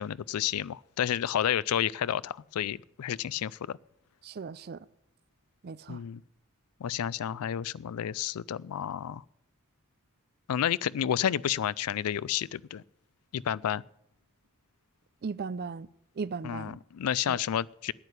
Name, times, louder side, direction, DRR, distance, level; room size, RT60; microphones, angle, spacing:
voice 1, 0.0-3.8 5.9-6.2 6.8-9.2 10.5-12.8 13.3-13.8 16.4-17.9, left 10 dB, 85° left, 0.4 m, -30 dB
voice 2, 4.2-4.8 5.6-6.0 15.2-15.9 16.2-16.8 17.3-17.4, right 5 dB, 45° right, 0.4 m, -37 dB
9.8 x 8.9 x 8.2 m
head